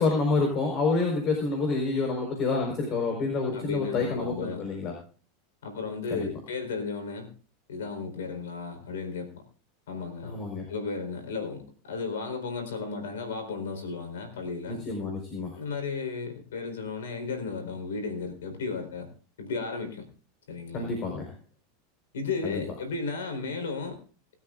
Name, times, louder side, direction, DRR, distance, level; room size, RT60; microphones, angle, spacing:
voice 1, 0.0-5.0 6.1-6.3 10.2-10.7 14.7-15.6 20.7-21.3 22.4-22.6, left 3 dB, 40° left, 2 dB, 4.6 m, -28 dB
voice 2, 3.5-4.6 5.6-7.3 7.7-9.3 9.9-10.4 10.7-14.8 15.5-19.1 19.4-20.1 20.5-20.9 22.1-24.0, left 4 dB, 90° left, 7 dB, 4.3 m, -34 dB
20.0 x 13.0 x 2.5 m, 0.39 s
hypercardioid pair, 115°, 0 cm